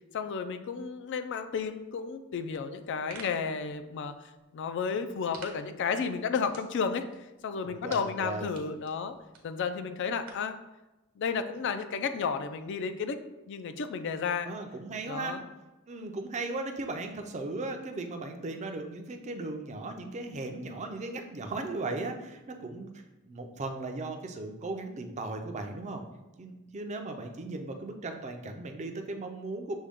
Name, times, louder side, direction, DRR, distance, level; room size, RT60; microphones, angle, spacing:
voice 1, 0.1-4.2 4.5-7.0 7.4-9.1 9.4-10.6 11.2-13.2 13.5-14.5 15.1-15.4, left 5 dB, 55° left, 10 dB, 0.3 m, -32 dB
sound 1, 2.7-10.6, right 5 dB, 75° right, 1.0 m, -53 dB
voice 2, 7.6-8.5 14.4-15.4 15.9-22.9 23.2-26.0 26.4-29.8, right 2 dB, 35° right, 5 dB, 0.4 m, -37 dB
6.2 x 2.2 x 3.5 m, 1.0 s
head